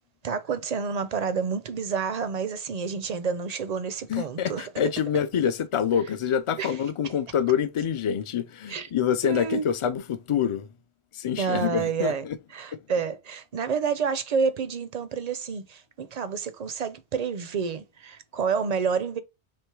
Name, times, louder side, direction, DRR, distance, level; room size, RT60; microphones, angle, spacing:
voice 1, 0.2-4.7 6.6-6.8 8.7-8.9 9.2-9.7 11.4-12.2 12.5-19.2, right 6 dB, 55° right, 0.5 m, -29 dB
voice 2, 4.1-10.7 11.1-12.4, left 8 dB, 55° left, 0.3 m, -26 dB
3.4 x 2.9 x 4.5 m
omnidirectional pair, 1.1 m